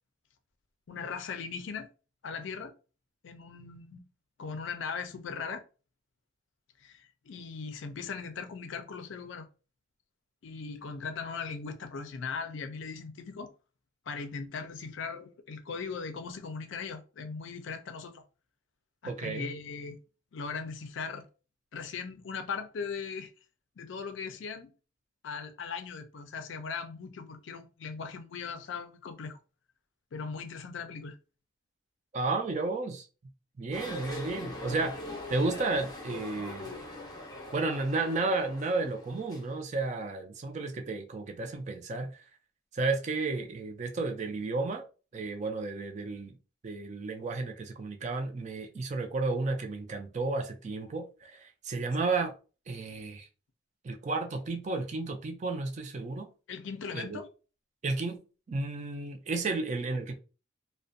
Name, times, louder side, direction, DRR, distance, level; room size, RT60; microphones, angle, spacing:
voice 1, 0.9-1.9 2.2-2.7 3.2-4.0 4.4-5.6 6.8-9.5 10.4-13.5 14.1-18.2 19.0-20.0 20.3-21.3 21.7-23.3 23.8-24.7 25.2-29.4 30.1-31.2 56.5-57.3 59.4-59.5, left 5 dB, 70° left, 0.4 m, -39 dB
voice 2, 19.0-19.5 32.1-33.1 33.6-35.0 35.3-36.8 37.5-42.2 42.7-44.8 45.1-46.4 46.6-52.3 52.7-53.3 53.8-56.3 56.9-57.2 57.8-58.2 58.5-60.1, right 3 dB, 35° right, 0.4 m, -32 dB
sound 1, 33.7-39.6, left 1 dB, 20° left, 0.6 m, -42 dB
2.4 x 2.1 x 2.5 m
head